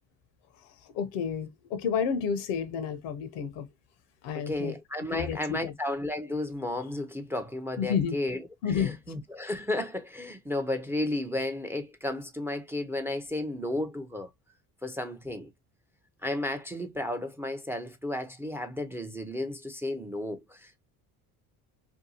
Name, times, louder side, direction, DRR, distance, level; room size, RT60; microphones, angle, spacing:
voice 1, 0.9-3.7 4.2-4.8 5.1-5.7 7.8-8.2 8.6-9.0, left 7 dB, 80° left, 0.7 m, -30 dB
voice 2, 4.5-8.4 8.7-14.3 14.8-15.5 16.2-20.8, left 1 dB, 5° right, 0.4 m, -33 dB
2.7 x 2.2 x 2.6 m
supercardioid pair, 75°, 42 cm